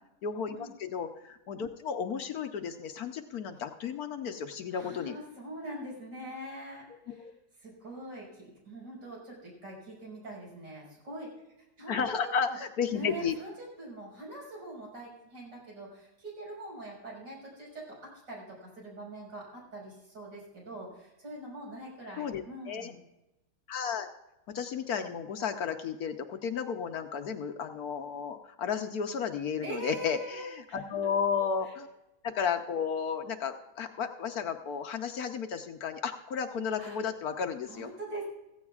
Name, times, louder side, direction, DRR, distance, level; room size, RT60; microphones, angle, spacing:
voice 1, 0.2-5.2 7.1-7.3 11.9-13.3 22.2-22.9 23.7-24.1 24.5-31.9 32.2-37.9, left 6 dB, 65° left, 7 dB, 1.1 m, -33 dB
voice 2, 4.7-7.3 7.6-11.3 11.6-12.6 12.9-23.0 29.6-31.1 31.6-31.8 36.8-37.0 37.7-38.3, right 1 dB, 75° right, -4 dB, 6.2 m, -43 dB
15.5 x 15.5 x 2.4 m, 0.95 s
omnidirectional pair, 1.9 m